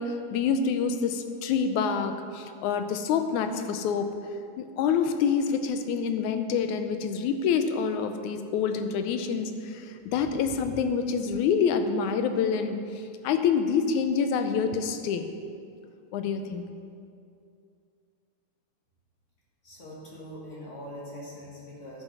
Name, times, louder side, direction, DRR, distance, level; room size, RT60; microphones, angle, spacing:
voice 1, 0.0-4.1 4.6-15.3 16.1-16.6, left 6 dB, 80° left, 8 dB, 2.0 m, -27 dB
voice 2, 19.6-22.0, equal, 35° left, -4 dB, 1.4 m, -42 dB
11.5 x 7.0 x 5.5 m, 2.4 s
omnidirectional pair, 3.5 m